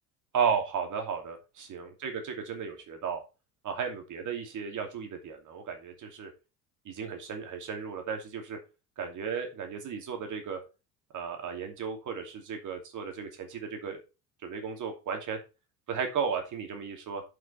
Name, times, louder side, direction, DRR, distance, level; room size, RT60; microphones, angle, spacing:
voice 1, 0.3-3.2 3.6-6.3 6.9-8.6 9.0-10.6 11.1-14.0 14.4-15.4 15.9-17.2, right 6 dB, 40° right, 4 dB, 2.7 m, -34 dB
11.0 x 5.6 x 4.2 m, 0.30 s
figure-of-eight pair, 65°, 47 cm